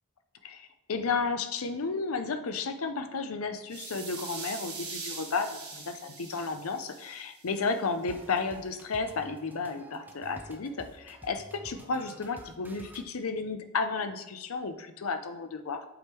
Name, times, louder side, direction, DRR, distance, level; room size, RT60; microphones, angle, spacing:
voice 1, 0.4-15.9, left 4 dB, 70° left, 9 dB, 0.6 m, -33 dB
sound 1, 3.7-7.8, right 4 dB, 50° right, 1.7 m, -42 dB
sound 2, 8.1-13.0, right 1 dB, 10° right, 0.5 m, -50 dB
7.7 x 3.5 x 4.4 m, 0.91 s
head